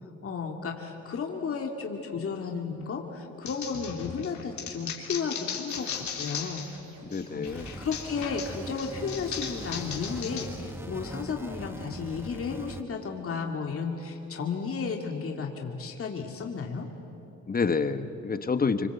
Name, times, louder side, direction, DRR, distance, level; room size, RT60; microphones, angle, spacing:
voice 1, 0.2-6.7 7.3-16.9, left 5 dB, 45° left, 2 dB, 2.4 m, -33 dB
sound 1, 3.5-6.8 7.1-10.5, left 7 dB, 70° left, 3.3 m, -37 dB
sound 2, 5.7-11.1, right 2 dB, 85° right, 6.5 m, -55 dB
voice 2, 7.0-7.7 17.5-18.9, left 5 dB, 30° left, 10 dB, 1.4 m, -28 dB
sound 3, 7.4-12.8, right 1 dB, 10° right, 1.2 m, -41 dB
26.5 x 24.5 x 8.2 m, 2.9 s
cardioid pair, 90°, 30 cm